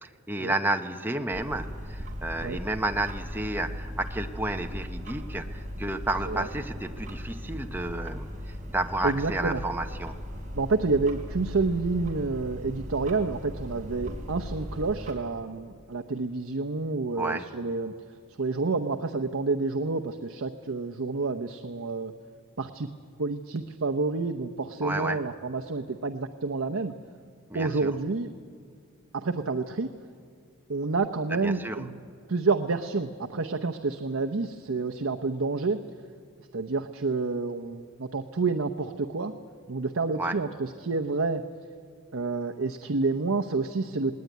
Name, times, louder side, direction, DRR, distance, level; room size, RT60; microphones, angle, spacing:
voice 1, 0.0-8.3 8.7-10.2 17.1-17.5 24.8-25.2 27.5-27.9 31.4-31.8 40.2-40.3, right 2 dB, 10° right, 5 dB, 0.9 m, -31 dB
sound 1, 1.3-15.1, equal, 35° right, 3.7 m, -38 dB
voice 2, 9.0-9.6 10.5-17.9 18.4-22.1 22.6-22.9 23.2-26.9 27.5-28.3 29.1-29.9 30.7-32.0 32.3-35.8 36.5-39.3 39.7-41.4 42.1-44.1, right 3 dB, 70° right, 5 dB, 0.8 m, -29 dB
19.0 x 19.0 x 9.4 m, 2.3 s
head